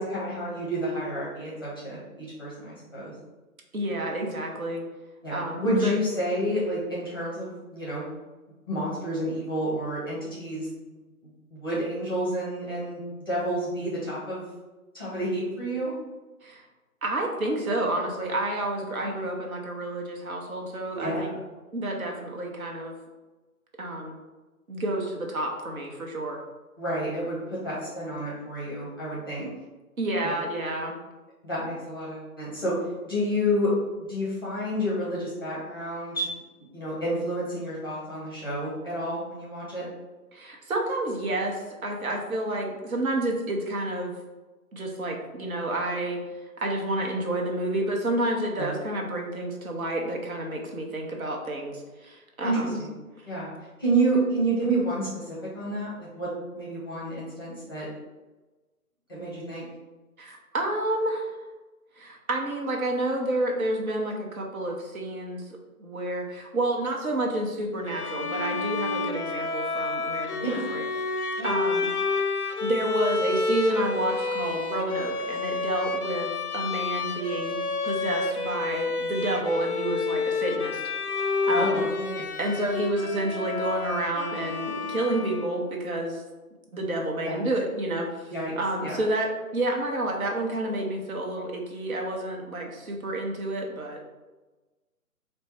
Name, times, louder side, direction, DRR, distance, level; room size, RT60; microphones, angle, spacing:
voice 1, 0.0-3.1 5.2-8.0 8.7-13.0 13.3-14.4 14.9-15.9 19.0-19.1 20.9-21.2 26.8-29.5 30.2-30.3 31.4-32.7 33.0-33.7 34.0-36.3 36.7-39.8 48.6-48.7 52.4-52.9 53.3-53.5 53.8-56.3 56.5-57.9 59.1-59.6 70.4-70.6 71.4-71.5 81.5-82.3 87.2-87.4 88.3-88.5 88.8-89.0, right 1 dB, 15° left, -7 dB, 0.6 m, -29 dB
voice 2, 3.7-4.8 5.3-6.0 16.4-16.6 17.0-21.4 21.7-23.0 23.8-24.1 24.7-26.4 30.0-31.0 40.3-44.1 44.7-46.2 46.6-52.8 53.2-53.3 60.2-61.4 62.0-65.4 65.8-70.8 71.4-71.9 72.6-80.8 81.1-81.8 82.4-86.2 86.7-94.0, right 1 dB, 65° right, 1 dB, 1.0 m, -30 dB
Bowed string instrument, 67.9-85.7, left 3 dB, 85° left, 0.6 m, -29 dB
4.3 x 2.2 x 4.3 m, 1.2 s
figure-of-eight pair, 140°, 45 cm